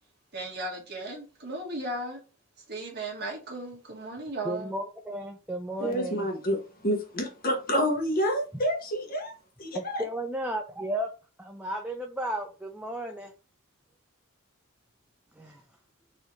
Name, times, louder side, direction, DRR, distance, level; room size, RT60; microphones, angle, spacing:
voice 1, 0.3-2.2 2.7-4.7, right 2 dB, 45° right, 1.5 m, -36 dB
voice 2, 4.4-6.3 9.7-11.1 11.4-13.3 15.4-15.6, right 1 dB, 5° right, 0.4 m, -34 dB
voice 3, 5.8-9.3 9.6-10.0, equal, 40° left, 1.0 m, -28 dB
4.1 x 2.9 x 3.8 m
head